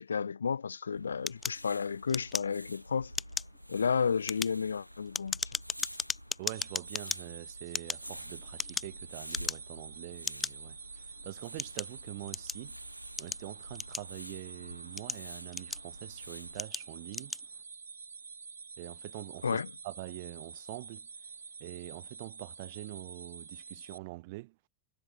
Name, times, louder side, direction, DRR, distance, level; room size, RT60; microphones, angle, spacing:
voice 1, 0.0-3.1 3.7-5.4 19.4-19.7, left 6 dB, 70° left, 1.0 m, -32 dB
sound 1, 0.9-16.6, equal, 90° left, 2.8 m, -49 dB
sound 2, 1.3-2.8 3.1-3.6 4.1-7.2 7.7-9.0 9.3-9.8 10.2-10.5 11.2-12.7 13.2-14.3 14.8-16.0 16.5-16.8 17.1-17.4, left 5 dB, 15° left, 2.1 m, -36 dB
voice 2, 6.4-12.8 13.2-17.3 18.8-21.1 21.6-24.5, right 22 dB, 50° right, 1.3 m, -45 dB
sound 3, 6.5-24.0, right 5 dB, 75° right, 5.6 m, -48 dB
figure-of-eight pair, 90°, 0 cm